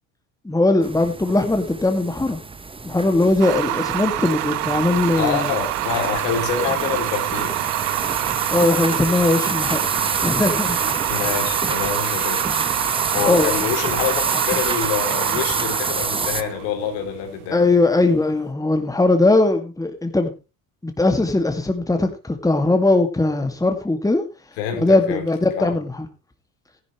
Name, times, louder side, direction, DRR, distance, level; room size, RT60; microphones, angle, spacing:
voice 1, 0.4-2.4 2.8-5.5 8.5-9.8 10.2-10.8 13.2-13.5 17.5-20.3 20.8-24.2 24.8-25.9, left 2 dB, 10° left, 2.2 m, -19 dB
sound 1, 0.8-16.4, right 3 dB, 10° right, 0.9 m, -28 dB
sound 2, 3.4-18.4, right 16 dB, 80° right, 1.0 m, -26 dB
voice 2, 5.2-7.8 11.1-12.7 13.1-17.8 24.6-25.3 25.6-25.8, left 8 dB, 75° left, 3.4 m, -26 dB
15.0 x 11.0 x 3.2 m
hypercardioid pair, 80°, 44 cm